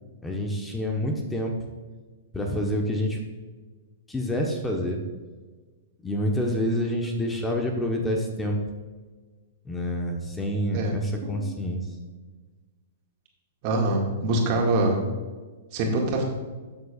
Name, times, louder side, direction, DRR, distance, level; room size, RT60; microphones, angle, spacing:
voice 1, 0.2-1.6 2.3-3.2 4.1-5.0 6.0-8.6 9.6-11.8, equal, 10° left, 1 dB, 1.1 m, -27 dB
voice 2, 13.6-15.0 15.7-16.2, right 2 dB, 45° right, 0 dB, 2.0 m, -24 dB
13.0 x 7.0 x 2.5 m, 1.4 s
hypercardioid pair, 120°, 0 cm